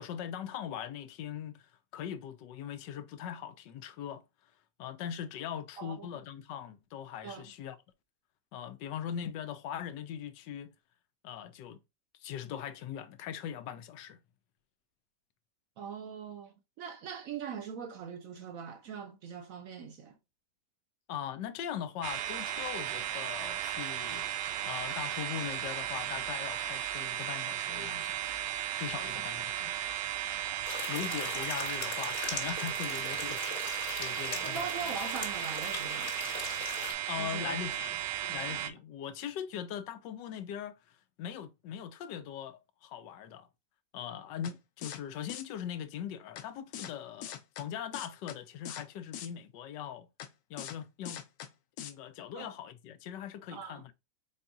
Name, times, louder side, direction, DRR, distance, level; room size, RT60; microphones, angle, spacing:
voice 1, 0.0-1.7 1.9-4.2 4.8-7.8 8.5-10.7 11.2-11.8 12.2-14.2 21.1-28.1 28.7-29.7 30.9-34.7 37.1-38.0 38.3-43.5 43.9-50.1 50.5-51.2 51.8-53.9, left 9 dB, 90° left, 1.3 m, -40 dB
voice 2, 5.8-6.1 7.2-7.5 15.8-20.2 34.4-36.1 37.1-37.8 38.2-38.7 52.3-52.5 53.5-53.8, right 7 dB, 70° right, 0.8 m, -42 dB
sound 1, 22.0-38.7, right 11 dB, 85° right, 1.2 m, -35 dB
sound 2, 30.6-36.9, left 4 dB, 45° left, 1.5 m, -40 dB
sound 3, 44.4-44.5 44.8-45.0 45.3-45.4 46.4-46.5 46.7-46.9 47.2-47.6 47.9-48.4 48.6-48.8 49.1-49.3 50.2-50.3 50.6-50.8 51.0-51.5 51.8-51.9, left 10 dB, 70° left, 1.0 m, -41 dB
4.4 x 4.1 x 2.3 m
omnidirectional pair, 1.9 m